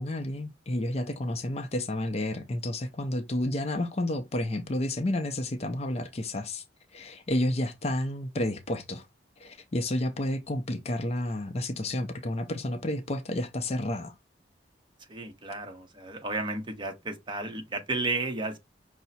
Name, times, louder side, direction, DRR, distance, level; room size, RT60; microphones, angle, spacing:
voice 1, 0.0-6.6 6.9-9.1 9.4-14.1, left 1 dB, 35° left, 0.5 m, -31 dB
voice 2, 15.1-18.6, right 2 dB, 25° right, 0.9 m, -33 dB
5.6 x 2.0 x 4.1 m
head